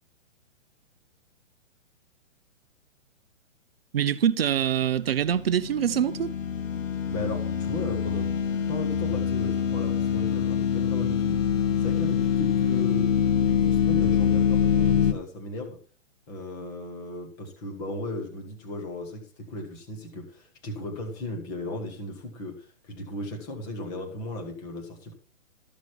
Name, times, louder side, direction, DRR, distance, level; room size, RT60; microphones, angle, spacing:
voice 1, 3.9-6.3, right 9 dB, 50° right, 0.6 m, -24 dB
sound 1, 5.3-15.1, left 8 dB, 80° left, 1.4 m, -25 dB
voice 2, 7.1-8.3 8.7-11.4 11.8-13.1 13.4-15.8 16.3-25.1, left 1 dB, 10° left, 1.0 m, -36 dB
13.5 x 6.3 x 4.5 m
hypercardioid pair, 175°, 38 cm